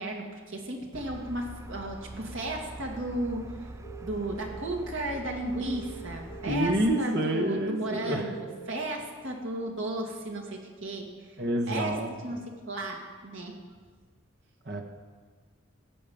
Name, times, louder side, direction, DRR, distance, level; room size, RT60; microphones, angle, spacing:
voice 1, 0.0-3.5 4.0-8.3 8.7-11.4 11.7-12.0 12.2-13.6, right 1 dB, 70° right, 1 dB, 2.1 m, -34 dB
sound 1, 0.9-7.0, right 2 dB, 15° right, 0.3 m, -44 dB
sound 2, 3.8-4.7 5.7-6.7 7.7-8.7, right 4 dB, 45° left, 1.9 m, -45 dB
voice 2, 6.5-8.3 11.4-12.4 14.6-14.8, right 1 dB, 50° right, 2 dB, 1.5 m, -28 dB
16.0 x 5.5 x 8.7 m, 1.5 s
head